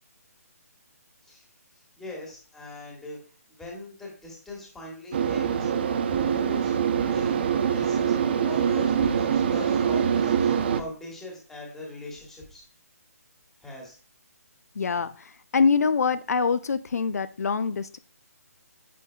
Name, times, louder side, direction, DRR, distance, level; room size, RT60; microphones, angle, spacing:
voice 1, 1.2-5.7 6.1-6.7 7.1-12.6 13.6-14.0, left 1 dB, 5° left, -2 dB, 1.7 m, -41 dB
sound 1, 5.1-10.8, right 7 dB, 40° right, 0.6 m, -24 dB
voice 2, 14.8-18.0, left 5 dB, 75° left, 12 dB, 0.5 m, -25 dB
8.4 x 5.6 x 2.3 m, 0.39 s
hypercardioid pair, 155°, 9 cm